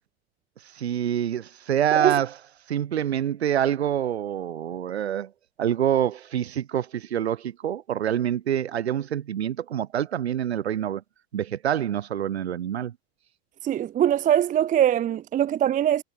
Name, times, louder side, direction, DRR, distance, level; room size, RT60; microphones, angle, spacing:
voice 1, 0.6-2.4 2.7-5.3 5.6-11.0 11.3-12.9, right 10 dB, 90° right, 2.4 m, -26 dB
voice 2, 13.6-16.0, right 11 dB, 25° right, 0.7 m, -22 dB
hypercardioid pair, 105°, 31 cm